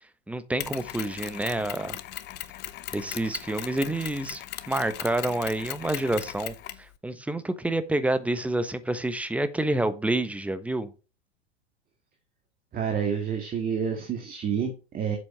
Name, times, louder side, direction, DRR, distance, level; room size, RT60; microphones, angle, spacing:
voice 1, 0.3-2.0 2.9-10.9, right 1 dB, 5° right, 12 dB, 1.1 m, -28 dB
Mechanisms, 0.6-6.9, left 14 dB, 30° left, 0.9 m, -38 dB
voice 2, 12.7-15.2, right 7 dB, 25° right, 3 dB, 2.0 m, -29 dB
7.6 x 7.6 x 6.7 m, 0.33 s
figure-of-eight pair, 90°, 34 cm